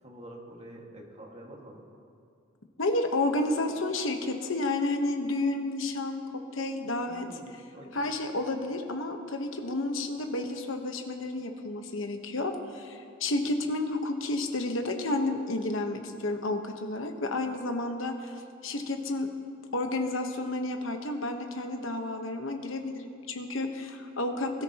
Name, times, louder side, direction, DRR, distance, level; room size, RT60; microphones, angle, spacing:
voice 1, 0.0-1.8 7.1-7.9, right 1 dB, 30° right, -1 dB, 1.8 m, -47 dB
voice 2, 2.8-6.2 6.5-7.2 7.9-18.3 18.6-19.3 19.7-24.5, left 2 dB, 70° left, 5 dB, 1.1 m, -31 dB
20.5 x 13.0 x 2.9 m, 2.4 s
head